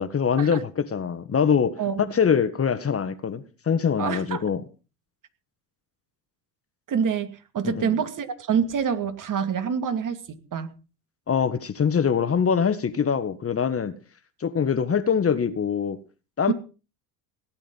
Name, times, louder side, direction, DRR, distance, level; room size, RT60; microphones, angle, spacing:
voice 1, 0.0-1.8 2.1-4.6 7.6-7.9 11.3-13.9 14.4-16.0 16.4-16.5, left 7 dB, 25° left, 1.7 m, -23 dB
voice 2, 4.0-4.4 6.9-10.7 16.5-16.6, right 7 dB, 40° right, 2.5 m, -26 dB
18.0 x 10.0 x 5.5 m
hypercardioid pair, 70°, 49 cm